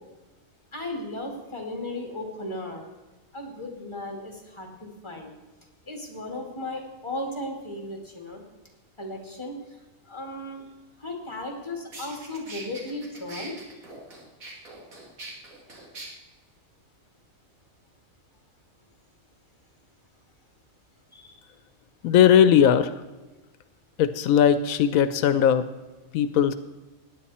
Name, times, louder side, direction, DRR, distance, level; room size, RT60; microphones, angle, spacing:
voice 1, 0.7-2.8 3.3-5.3 5.9-8.4 9.0-9.8 10.0-10.7 11.0-13.6 21.1-21.4, left 1 dB, 20° left, 1 dB, 2.4 m, -36 dB
sound 1, 11.5-11.6 11.9-16.1, right 2 dB, 85° right, 2.5 m, -42 dB
voice 2, 22.0-22.9 24.0-25.7 26.1-26.5, left 9 dB, 85° left, 12 dB, 1.0 m, -19 dB
17.5 x 9.7 x 4.3 m, 1.1 s
omnidirectional pair, 1.4 m